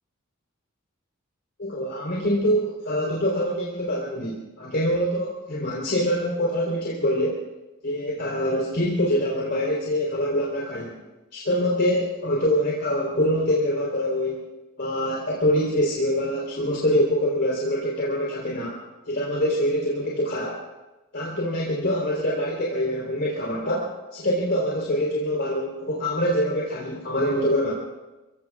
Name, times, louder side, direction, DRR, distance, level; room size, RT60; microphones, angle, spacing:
voice 1, 1.6-7.4 7.8-11.0 11.3-14.4 14.8-18.8 19.1-20.6 21.1-23.9 24.1-27.7, equal, 55° left, -5 dB, 4.1 m, -24 dB
29.5 x 17.5 x 2.5 m, 1.1 s
head